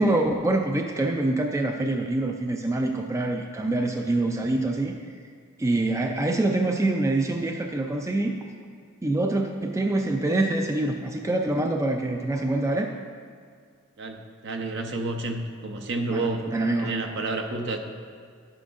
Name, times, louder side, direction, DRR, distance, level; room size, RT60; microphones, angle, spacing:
voice 1, 0.0-4.9 5.6-8.4 9.0-12.9 16.1-17.0, right 2 dB, 15° right, 3 dB, 0.3 m, -25 dB
voice 2, 14.0-16.4 16.8-17.8, right 3 dB, 55° right, 4 dB, 0.7 m, -30 dB
11.0 x 8.7 x 2.5 m, 2.1 s
head